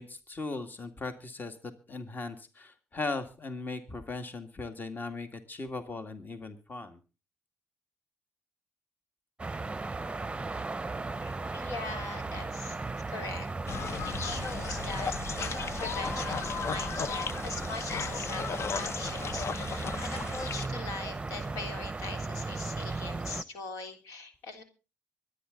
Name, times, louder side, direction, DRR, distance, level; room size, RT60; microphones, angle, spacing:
voice 1, 0.0-7.0, left 3 dB, 35° left, 7 dB, 2.2 m, -38 dB
sound 1, 9.4-23.4, right 3 dB, 20° right, 0.8 m, -36 dB
voice 2, 11.2-12.8 13.1-13.5 13.9-24.6, left 3 dB, 80° left, 6 dB, 3.3 m, -41 dB
sound 2, 13.7-20.7, left 6 dB, 55° left, 0.8 m, -36 dB
24.0 x 9.9 x 3.9 m, 0.33 s
supercardioid pair, 65°, 5 cm